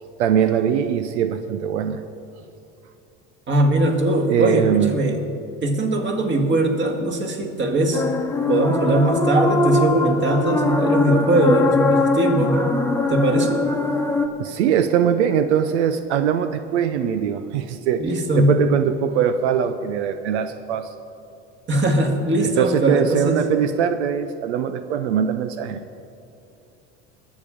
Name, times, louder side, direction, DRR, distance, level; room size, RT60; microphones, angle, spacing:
voice 1, 0.2-2.0 4.3-4.9 14.4-20.9 22.4-25.8, right 8 dB, 90° right, 10 dB, 0.7 m, -21 dB
voice 2, 3.5-5.2 5.6-8.0 8.5-12.8 13.1-13.6 18.0-18.6 21.7-23.5, right 1 dB, 35° right, 3 dB, 2.1 m, -20 dB
sound 1, 7.9-14.3, left 2 dB, 10° left, 1.0 m, -22 dB
21.5 x 7.3 x 5.1 m, 2.6 s
supercardioid pair, 95°, 33 cm